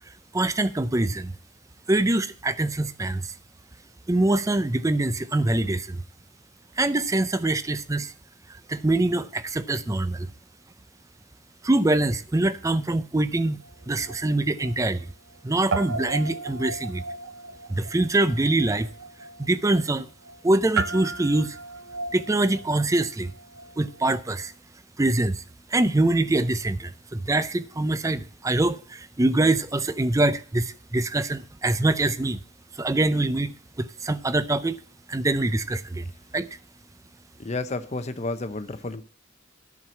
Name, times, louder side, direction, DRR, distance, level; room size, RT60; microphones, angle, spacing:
voice 1, 0.3-1.3 1.9-3.3 4.1-6.0 6.8-8.1 8.7-10.3 11.6-13.6 13.9-15.1 15.4-17.0 17.7-18.9 19.4-20.1 20.4-21.6 22.1-23.3 23.8-24.5 25.0-25.4 25.7-32.4 32.7-34.8 35.1-36.0 36.3-36.5, right 2 dB, 15° right, 0.5 m, -24 dB
Guitar, 13.6-15.4 15.7-24.3, right 4 dB, 85° right, 0.6 m, -35 dB
voice 2, 37.4-39.0, left 2 dB, 35° left, 0.7 m, -31 dB
10.5 x 4.7 x 7.3 m
head